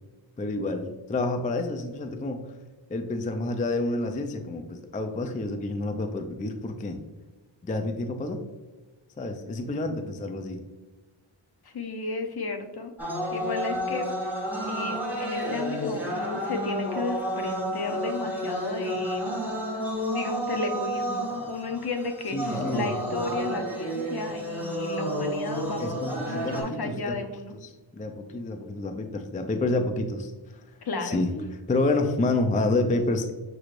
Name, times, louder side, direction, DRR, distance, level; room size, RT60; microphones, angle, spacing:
voice 1, 0.4-2.4 2.9-7.0 7.6-8.4 9.2-10.6 22.3-23.0 25.8-27.2 27.6-30.6 31.0-31.3 31.7-33.3, left 2 dB, 20° left, 6 dB, 0.3 m, -29 dB
voice 2, 11.6-12.9 13.3-14.1 14.7-19.3 20.1-27.5 30.8-31.2, left 3 dB, 55° left, 6 dB, 0.7 m, -33 dB
sound 1, 13.0-26.6, equal, 5° right, 1.2 m, -31 dB
6.0 x 3.1 x 2.5 m, 1.2 s
wide cardioid pair, 90°, 47 cm